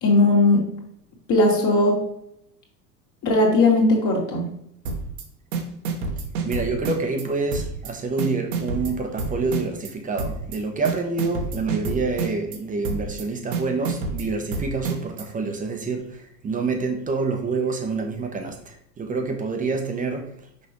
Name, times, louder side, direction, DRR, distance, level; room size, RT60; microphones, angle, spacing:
voice 1, 0.0-0.6 1.3-2.0 3.2-4.5, left 2 dB, 35° left, 2.1 m, -18 dB
sound 1, 4.9-5.2 5.5-7.2 7.5-7.9 8.2-9.9 10.2-10.6 10.9-12.6 12.8-13.2 13.5-15.2, right 4 dB, 55° right, 1.2 m, -28 dB
voice 2, 6.4-20.3, right 4 dB, 15° right, 0.9 m, -27 dB
6.0 x 5.3 x 3.0 m
figure-of-eight pair, 85°, 50 cm